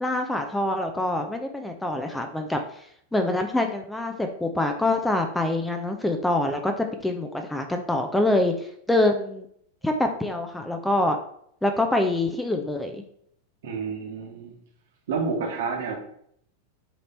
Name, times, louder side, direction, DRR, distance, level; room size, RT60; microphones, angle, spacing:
voice 1, 0.0-2.6 3.1-9.5 9.8-11.2 11.6-13.0, left 1 dB, 5° left, 5 dB, 0.4 m, -25 dB
voice 2, 13.6-14.5 15.1-16.0, right 5 dB, 55° right, 2 dB, 1.1 m, -29 dB
3.9 x 3.2 x 4.3 m, 0.68 s
figure-of-eight pair, 90°, 0 cm